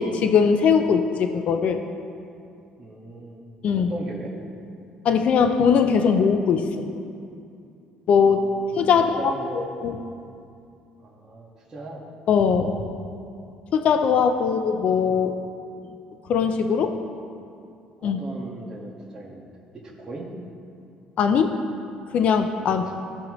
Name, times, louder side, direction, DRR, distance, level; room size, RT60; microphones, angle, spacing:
voice 1, 0.0-1.8 3.6-3.9 5.0-6.7 8.1-8.4 8.8-10.0 12.3-12.8 13.7-15.3 16.3-16.9 18.0-18.2 21.2-21.5 22.1-22.9, left 6 dB, 55° left, 7 dB, 0.5 m, -20 dB
voice 2, 2.8-3.4 3.7-4.3 8.2-8.7 9.0-9.6 11.0-12.1 18.0-19.5 20.0-20.3 22.8-22.9, right 2 dB, 20° right, -9 dB, 1.7 m, -38 dB
16.0 x 5.7 x 3.1 m, 2.5 s
cardioid pair, 115°, 3 cm